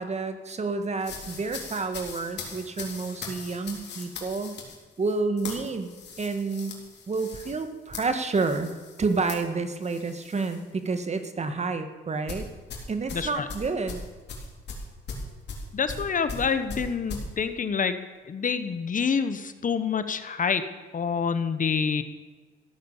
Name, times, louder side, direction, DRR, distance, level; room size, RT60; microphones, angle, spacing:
voice 1, 0.0-4.6 5.0-5.9 6.2-6.7 7.1-8.7 9.0-12.5 12.9-14.0, right 4 dB, 35° right, 8 dB, 1.7 m, -29 dB
sound 1, 1.0-10.6 10.9-11.2 12.3-17.3, left 4 dB, 60° left, 3.8 m, -40 dB
voice 2, 13.1-13.5 15.7-18.0 18.2-20.7 20.9-22.0, left 6 dB, 40° left, 11 dB, 1.1 m, -27 dB
15.0 x 9.2 x 7.3 m, 1.3 s
cardioid pair, 90°, 20 cm